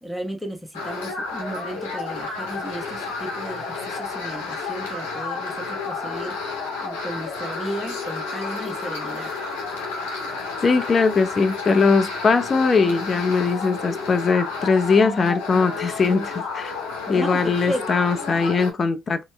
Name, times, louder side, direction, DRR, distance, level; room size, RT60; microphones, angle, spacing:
voice 1, 0.0-6.4 6.8-9.3 17.1-17.9, right 1 dB, ahead, 1.1 m, -34 dB
sound 1, 0.7-18.7, left 4 dB, 80° left, 1.1 m, -31 dB
voice 2, 10.6-16.7 17.1-19.2, left 4 dB, 40° left, 0.7 m, -20 dB
4.2 x 2.2 x 3.3 m
hypercardioid pair, 45°, 0 cm